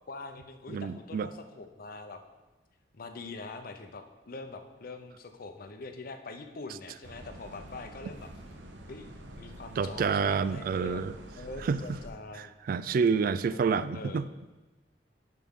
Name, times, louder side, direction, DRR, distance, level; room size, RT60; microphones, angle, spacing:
voice 1, 0.1-2.2 2.9-8.3 8.9-9.1 9.4-11.0 11.4-12.5 13.4-14.3, left 3 dB, 55° left, 7 dB, 0.7 m, -43 dB
voice 2, 0.7-1.3 9.8-11.1 11.6-11.8 12.4-14.3, right 5 dB, 55° right, 15 dB, 0.3 m, -28 dB
sound 1, 7.0-12.1, right 1 dB, 90° right, 0.9 m, -47 dB
10.5 x 5.9 x 3.7 m, 1.1 s
head